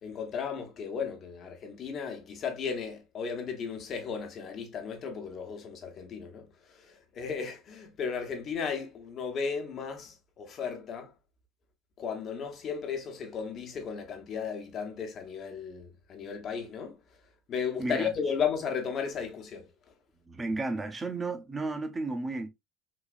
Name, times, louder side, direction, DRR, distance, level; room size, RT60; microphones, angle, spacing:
voice 1, 0.0-11.1 12.0-17.0 17.5-19.7, left 6 dB, 45° left, 1.2 m, -35 dB
voice 2, 17.8-18.1 20.3-22.5, right 2 dB, 20° right, 0.8 m, -33 dB
4.0 x 2.9 x 2.4 m
supercardioid pair, 110°, 0 cm